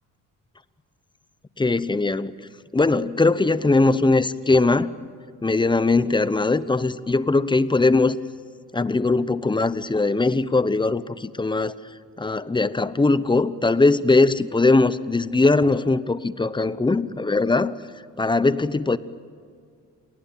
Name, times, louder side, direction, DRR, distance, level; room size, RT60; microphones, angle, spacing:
voice 1, 1.6-2.3 2.7-4.9 5.4-8.2 8.7-11.7 12.2-17.8 18.2-19.0, left 3 dB, 15° left, 15 dB, 0.9 m, -20 dB
28.5 x 19.5 x 8.8 m, 2.1 s
cardioid pair, 90°, 30 cm